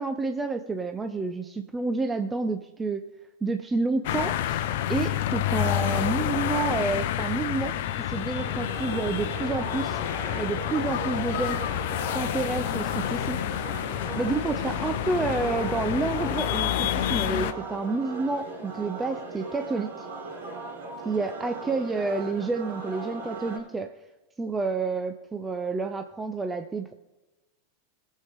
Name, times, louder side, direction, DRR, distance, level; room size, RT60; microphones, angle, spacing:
voice 1, 0.0-3.0 3.4-4.6 4.9-10.0 10.3-11.6 12.1-13.4 14.2-20.1 21.0-23.9 24.4-26.9, right 3 dB, 15° right, 7 dB, 0.7 m, -29 dB
sound 1, 4.0-17.5, left 11 dB, 60° left, 0.7 m, -29 dB
sound 2, 8.3-23.6, right 3 dB, 65° right, 4.5 m, -39 dB
21.5 x 7.5 x 3.6 m, 1.1 s
figure-of-eight pair, 90°, 0 cm